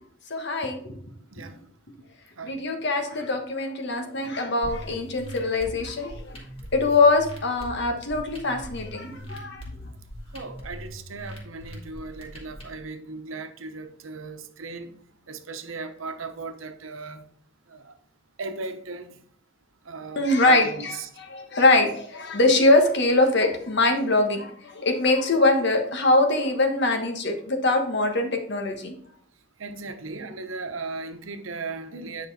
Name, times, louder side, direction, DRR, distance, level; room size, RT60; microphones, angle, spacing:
voice 1, 0.3-0.9 2.4-6.4 6.7-9.6 20.2-20.9 21.2-28.9, left 2 dB, 60° left, 1.3 m, -23 dB
sound 1, 4.6-12.6, equal, 30° left, 2.2 m, -41 dB
voice 2, 10.3-14.9 15.3-17.2 17.7-17.9 18.4-19.1 19.9-21.1 29.6-32.3, right 3 dB, 85° right, 0.9 m, -36 dB
9.3 x 5.3 x 4.2 m
head